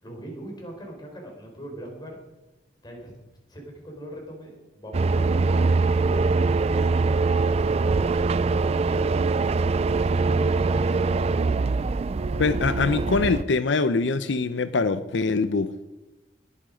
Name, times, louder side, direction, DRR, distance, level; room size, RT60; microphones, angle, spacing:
voice 1, 0.0-2.2 2.8-3.1 3.5-7.6 9.9-11.2, right 1 dB, 25° left, 1 dB, 4.0 m, -40 dB
sound 1, 4.9-13.4, right 4 dB, 35° right, 0.4 m, -23 dB
voice 2, 12.4-15.7, left 4 dB, 85° left, 12 dB, 0.6 m, -23 dB
20.0 x 8.7 x 5.1 m, 1.0 s
head